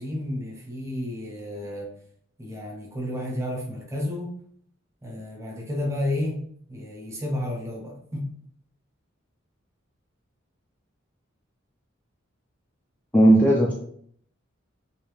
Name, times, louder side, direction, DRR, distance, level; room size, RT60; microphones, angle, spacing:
voice 1, 0.0-1.9 2.4-4.3 5.0-6.4 6.7-8.4, left 1 dB, 15° right, -1 dB, 0.7 m, -31 dB
voice 2, 13.1-13.7, right 1 dB, 5° left, -3 dB, 0.4 m, -16 dB
3.2 x 2.7 x 3.4 m, 0.63 s
head